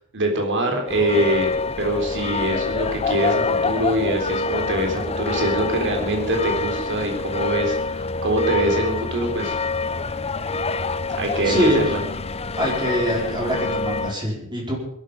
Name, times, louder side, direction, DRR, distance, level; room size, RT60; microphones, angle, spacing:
voice 1, 0.1-1.5 1.8-9.5 11.2-12.0, right 1 dB, 55° right, 3 dB, 3.9 m, -24 dB
sound 1, 0.9-14.2, left 3 dB, 25° left, 0.7 m, -26 dB
voice 2, 11.4-11.8 12.6-14.8, equal, 20° right, -1 dB, 4.9 m, -23 dB
21.0 x 12.5 x 5.2 m, 0.70 s
head